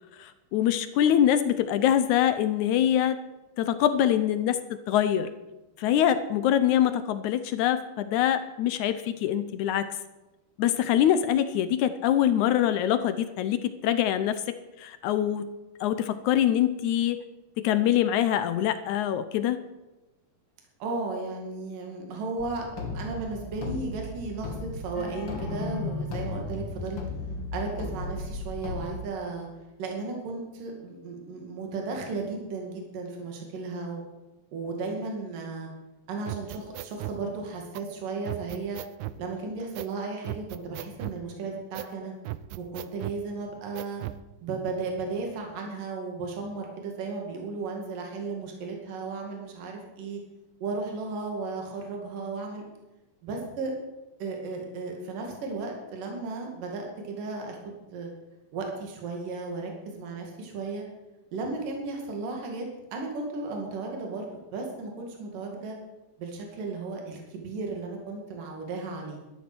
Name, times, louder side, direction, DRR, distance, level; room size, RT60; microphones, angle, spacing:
voice 1, 0.2-3.2 3.6-4.6 4.9-5.3 5.8-9.9 10.6-14.4 14.8-15.5 15.8-17.2 17.6-19.6, left 10 dB, 75° left, 12 dB, 1.8 m, -24 dB
voice 2, 20.8-22.7 22.9-27.0 27.5-29.5 29.8-34.0 34.5-35.7 36.1-38.8 39.2-42.1 42.6-44.0 44.4-50.2 50.6-52.6 53.2-53.7 54.2-58.1 58.5-60.8 61.3-65.8 66.2-69.2, right 3 dB, 70° right, 1 dB, 3.9 m, -35 dB
sound 1, 22.4-28.9, left 3 dB, 40° left, 2.3 m, -35 dB
sound 2, 36.3-37.2 37.7-37.8 38.3-39.2 39.8-39.9 40.2-41.2 41.7-41.9 42.3-43.2 43.8-44.2, right 15 dB, 85° right, 2.3 m, -36 dB
13.0 x 12.0 x 6.2 m, 1.0 s
omnidirectional pair, 4.0 m